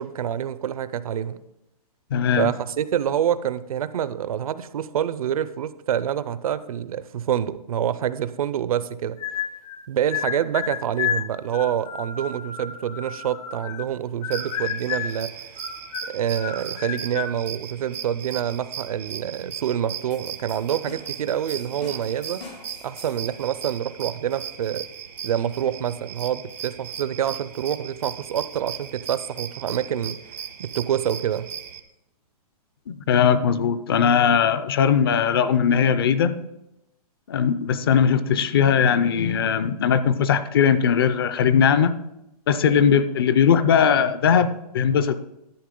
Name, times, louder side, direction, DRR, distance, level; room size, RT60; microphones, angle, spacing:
voice 1, 0.0-1.4 2.4-9.2 9.9-15.4 16.1-22.4 22.8-24.8 25.2-30.2 30.6-31.5, right 9 dB, 65° right, 15 dB, 0.5 m, -27 dB
voice 2, 2.1-2.5 32.9-36.4 37.3-41.9 42.5-45.2, left 7 dB, 35° left, 13 dB, 0.5 m, -19 dB
sound 1, 9.2-9.8 10.1-13.9 14.2-15.2 15.6-17.4, left 8 dB, 65° left, 1.5 m, -31 dB
sound 2, 14.3-31.8, right 9 dB, 85° right, 1.2 m, -37 dB
sound 3, 20.1-23.4, left 4 dB, 85° left, 3.6 m, -45 dB
11.5 x 7.0 x 3.8 m, 0.88 s
hypercardioid pair, 170°, 20 cm